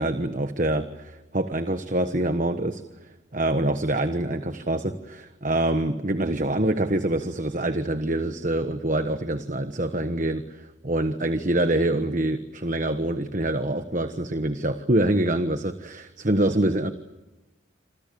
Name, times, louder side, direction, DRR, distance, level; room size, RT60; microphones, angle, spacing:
voice 1, 0.0-2.8 3.3-16.9, right 1 dB, 40° right, 8 dB, 1.3 m, -25 dB
27.5 x 26.5 x 7.0 m, 1.1 s
head